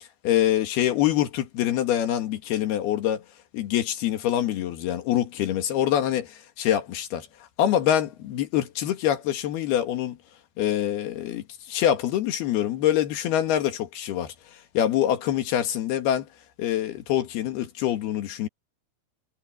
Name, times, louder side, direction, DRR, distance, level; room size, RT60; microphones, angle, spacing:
voice 1, 0.2-3.2 3.5-6.2 6.6-7.3 7.6-10.2 10.6-14.3 14.8-16.3 16.6-18.5, left 11 dB, 70° left, 3.6 m, -25 dB
omnidirectional pair, 4.8 m